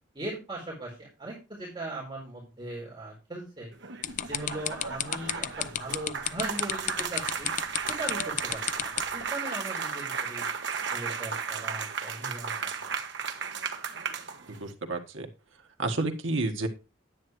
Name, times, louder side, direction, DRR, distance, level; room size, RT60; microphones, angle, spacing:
voice 1, 0.1-3.7 4.2-7.5 7.9-10.5 10.9-12.9, right 2 dB, 25° right, -3 dB, 4.3 m, -39 dB
sound 1, 3.7-14.7, right 6 dB, 65° right, 1.2 m, -35 dB
sound 2, 4.0-9.2, left 11 dB, 40° left, 0.4 m, -31 dB
voice 2, 14.5-15.3 15.8-16.7, right 2 dB, 85° right, 4 dB, 1.6 m, -30 dB
10.0 x 9.2 x 3.1 m, 0.30 s
head